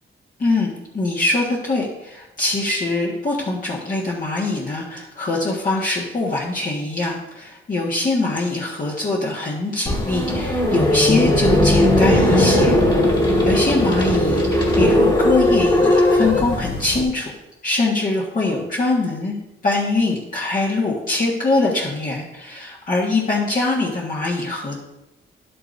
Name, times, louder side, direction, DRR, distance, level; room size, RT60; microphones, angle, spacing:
voice 1, 0.4-12.8 13.4-17.3 17.6-19.4 19.6-24.8, left 2 dB, 40° left, -5 dB, 1.6 m, -23 dB
sound 1, 9.9-17.0, left 1 dB, 20° left, 2.0 m, -17 dB
11.0 x 8.6 x 2.7 m, 0.92 s
wide cardioid pair, 105°, 21 cm